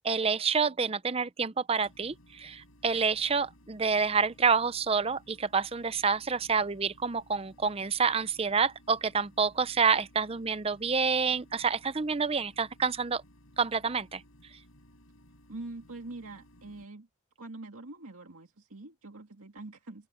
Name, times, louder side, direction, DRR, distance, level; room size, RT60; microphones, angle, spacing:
voice 1, 0.0-13.2 13.6-14.2, right 5 dB, 25° right, 0.6 m, -28 dB
sound 1, 1.8-16.9, left 1 dB, 70° left, 8.0 m, -59 dB
voice 2, 15.5-17.1 17.4-20.1, right 2 dB, 85° right, 2.0 m, -44 dB
open air
head